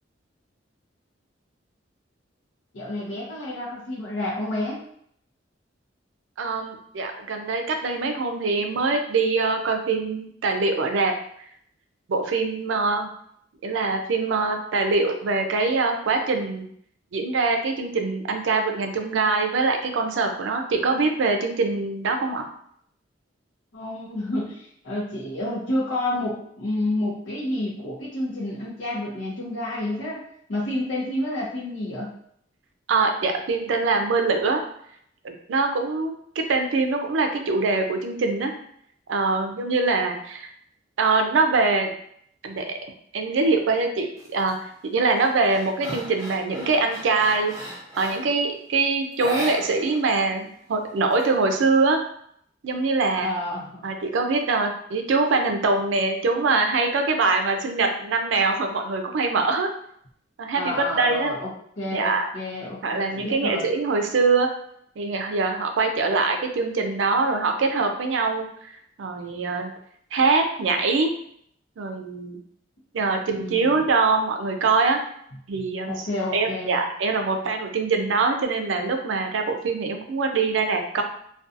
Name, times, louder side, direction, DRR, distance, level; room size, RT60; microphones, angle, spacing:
voice 1, 2.7-4.8 23.7-30.2 30.5-32.1 53.2-53.9 60.6-61.5 61.8-63.7 73.4-73.8 75.5-76.8, left 1 dB, 80° left, -5 dB, 0.7 m, -29 dB
voice 2, 6.4-11.1 12.1-13.1 13.6-16.7 17.1-22.4 32.9-34.6 35.2-38.5 39.1-40.5 41.0-41.9 42.4-42.8 43.1-47.5 48.0-52.0 52.6-53.3 53.8-59.7 60.4-61.3 61.9-62.2 62.8-64.5 65.0-69.7 70.1-71.1 71.8-72.4 72.9-75.0 75.5-76.1 76.3-81.0, right 3 dB, 75° right, 4 dB, 0.4 m, -23 dB
sound 1, 44.2-44.5 44.9-48.4 49.1-50.1 50.3-50.4 50.8-51.8, equal, 15° right, 0.6 m, -36 dB
2.5 x 2.3 x 2.6 m, 0.67 s
head